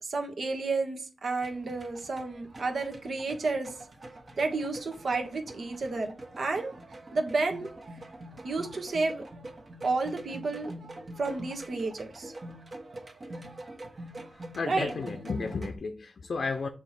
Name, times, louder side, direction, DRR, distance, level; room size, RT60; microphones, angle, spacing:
voice 1, 0.0-3.7 4.4-6.7 7.1-7.7 8.4-9.2 9.8-10.7 11.2-12.3 14.7-14.9, right 3 dB, 60° right, 1.3 m, -31 dB
sound 1, 1.4-15.8, right 1 dB, 40° right, 1.3 m, -44 dB
voice 2, 14.5-16.7, left 4 dB, 70° left, 0.7 m, -33 dB
7.3 x 3.1 x 5.8 m
wide cardioid pair, 115°, 0 cm